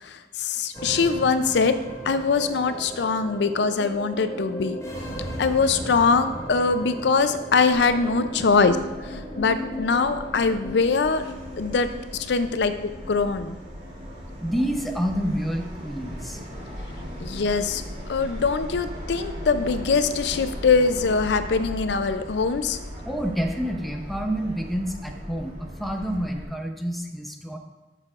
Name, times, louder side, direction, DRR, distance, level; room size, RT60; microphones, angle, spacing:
voice 1, 0.0-1.8 2.0-4.8 5.4-8.8 9.1-11.2 11.6-12.7 13.1-13.6 17.2-17.8 18.1-22.8, left 4 dB, 70° left, 10 dB, 0.5 m, -22 dB
sound 1, 0.7-19.2, equal, 20° left, 1.3 m, -38 dB
Subway metro underground, 7.7-26.4, equal, 35° right, 2.3 m, -38 dB
voice 2, 14.4-16.4 23.0-27.6, equal, ahead, 2 dB, 0.7 m, -28 dB
12.5 x 6.5 x 2.4 m, 1.2 s
head